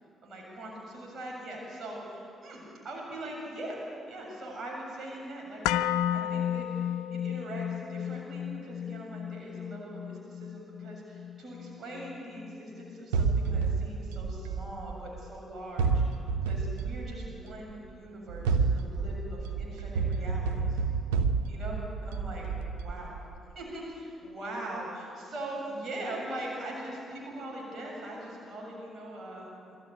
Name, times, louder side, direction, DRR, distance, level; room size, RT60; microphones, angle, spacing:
voice 1, 0.2-16.0 16.4-20.8 21.5-22.5 22.8-23.1 23.5-29.8, right 1 dB, 50° right, -2 dB, 7.4 m, -41 dB
sound 1, 5.6-13.7 14.0-14.1, left 10 dB, 75° left, 0.4 m, -34 dB
sound 2, 13.1-15.3 15.8-17.6 18.3-23.4, right 5 dB, 85° right, 0.8 m, -30 dB
23.0 x 14.5 x 9.5 m, 2.5 s
hypercardioid pair, 45°, 0 cm